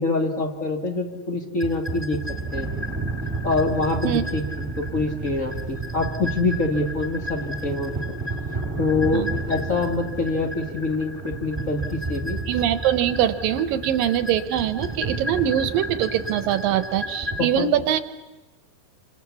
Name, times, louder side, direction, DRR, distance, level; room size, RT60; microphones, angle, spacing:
voice 1, 0.0-2.2 2.5-2.7 3.4-8.0 8.8-12.4 17.4-17.7, left 3 dB, 30° left, 4 dB, 1.5 m, -25 dB
sound 1, 1.6-17.4, right 2 dB, 10° right, 2.0 m, -31 dB
voice 2, 12.5-18.0, right 10 dB, 75° right, 12 dB, 2.7 m, -23 dB
29.0 x 26.5 x 7.2 m, 1.1 s
omnidirectional pair, 4.2 m